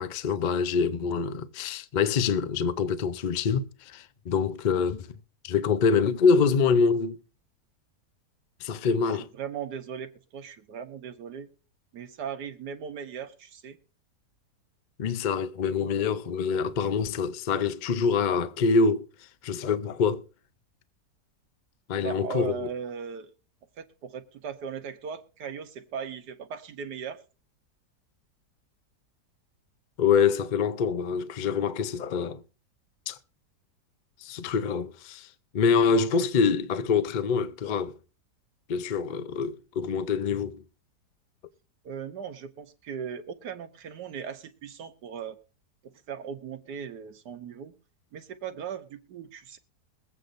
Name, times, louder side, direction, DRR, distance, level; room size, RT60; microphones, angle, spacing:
voice 1, 0.0-5.1 5.4-7.2 8.6-9.3 15.0-19.0 19.4-20.2 21.9-22.7 30.0-32.4 33.1-33.2 34.2-35.3 35.5-37.9 38.7-40.6, left 5 dB, 75° left, 0.4 m, -25 dB
voice 2, 9.3-11.5 11.9-13.8 22.0-23.3 23.8-27.2 41.8-45.4 45.8-47.7 48.1-49.6, right 7 dB, 80° right, 1.5 m, -38 dB
22.5 x 8.3 x 2.6 m
omnidirectional pair, 1.8 m